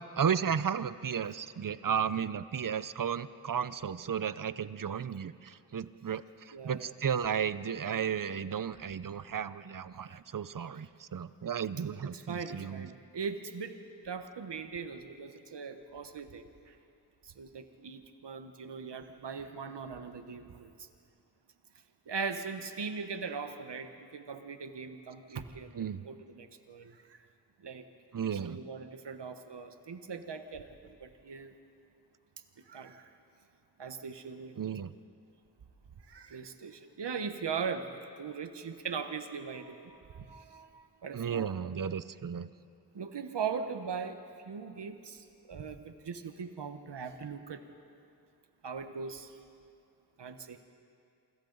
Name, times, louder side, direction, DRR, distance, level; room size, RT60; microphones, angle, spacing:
voice 1, 0.1-12.9 25.8-26.0 28.1-28.6 34.6-34.9 41.1-42.5, right 7 dB, 55° right, 15 dB, 0.7 m, -34 dB
voice 2, 6.5-6.9 10.6-10.9 12.1-16.8 17.2-20.9 22.1-27.3 27.6-27.9 28.3-31.6 32.6-33.1 33.8-34.6 36.0-41.7 42.9-44.2 44.4-47.6 48.6-49.4 50.2-50.6, right 5 dB, 85° right, 8 dB, 1.1 m, -40 dB
27.5 x 25.0 x 4.0 m, 2.4 s
wide cardioid pair, 60°, 40 cm